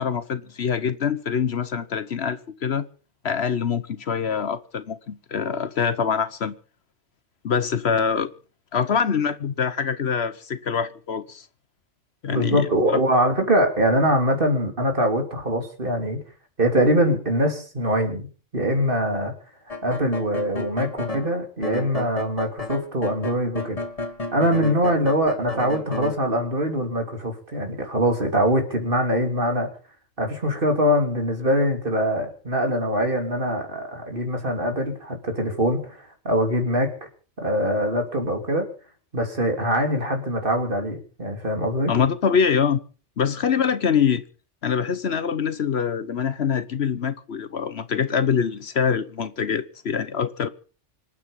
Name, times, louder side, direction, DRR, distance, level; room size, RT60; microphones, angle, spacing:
voice 1, 0.0-2.9 3.2-6.5 7.4-8.3 8.7-11.4 12.2-13.0 41.9-42.8 43.2-44.2 44.6-50.5, left 7 dB, 60° left, 1.2 m, -24 dB
voice 2, 12.3-16.2 16.6-18.3 18.5-19.3 19.8-23.8 24.3-29.7 30.2-37.1 37.4-38.7 39.1-41.9, equal, 45° right, 3.4 m, -23 dB
sound 1, 19.7-21.3 21.6-26.1, left 2 dB, 30° left, 1.7 m, -31 dB
26.0 x 9.2 x 5.4 m
omnidirectional pair, 1.2 m